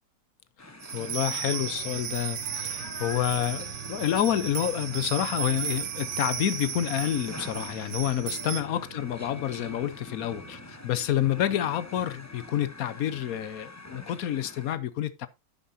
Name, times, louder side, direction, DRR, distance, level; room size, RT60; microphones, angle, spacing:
sound 1, 0.6-14.7, left 2 dB, 20° left, 0.5 m, -45 dB
sound 2, 0.8-8.6, right 9 dB, 75° right, 1.8 m, -35 dB
voice 1, 0.9-15.3, left 11 dB, 60° left, 1.0 m, -29 dB
sound 3, 0.9-13.2, right 10 dB, 50° right, 0.9 m, -47 dB
10.5 x 9.3 x 2.7 m
omnidirectional pair, 2.0 m